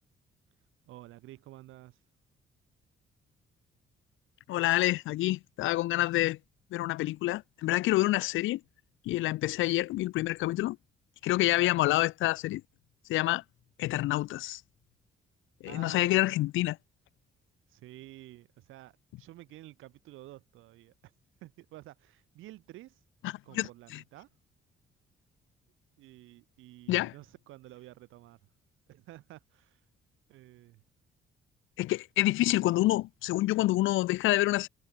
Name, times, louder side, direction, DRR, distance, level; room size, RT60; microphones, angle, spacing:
voice 1, 0.9-2.0 15.7-16.2 17.7-21.1 21.4-23.0 23.4-24.3 26.0-28.4 28.9-29.8 30.3-30.8, right 16 dB, 90° right, 1.7 m, -51 dB
voice 2, 4.5-6.4 6.7-8.6 9.1-10.8 11.2-12.6 13.1-13.4 13.8-14.6 15.6-16.8 23.2-23.7 26.9-27.1 31.8-34.7, left 17 dB, 80° left, 0.5 m, -27 dB
cardioid pair, 90°, 20 cm